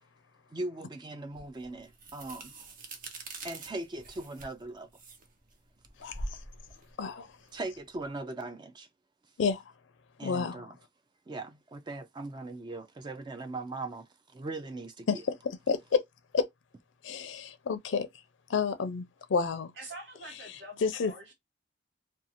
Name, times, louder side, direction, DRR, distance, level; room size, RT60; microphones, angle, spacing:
voice 1, 0.5-2.5 3.4-4.9 7.5-8.9 10.2-10.8 11.3-15.2, right 2 dB, 25° right, 0.3 m, -39 dB
sound 1, 1.4-8.1, right 2 dB, 45° right, 0.7 m, -45 dB
voice 2, 6.0-6.4 7.0-7.3 9.4-9.6 10.2-10.6 15.1-16.0 16.3-16.5 17.0-18.1 18.5-19.7 20.8-21.1, left 5 dB, 70° left, 0.4 m, -30 dB
voice 3, 19.8-21.3, right 1 dB, 75° right, 1.2 m, -46 dB
2.5 x 2.3 x 2.7 m
head